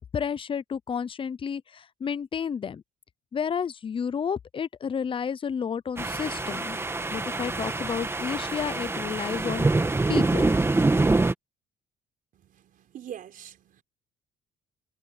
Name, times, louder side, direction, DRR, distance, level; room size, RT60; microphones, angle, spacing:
voice 1, 0.1-2.8 3.3-6.8 7.1-9.8 10.1-10.5, left 7 dB, 30° left, 0.7 m, -31 dB
sound 1, 6.0-11.3, right 2 dB, 15° right, 1.5 m, -25 dB
voice 2, 12.3-13.8, right 10 dB, 55° right, 4.9 m, -44 dB
cardioid pair, 110°, 17 cm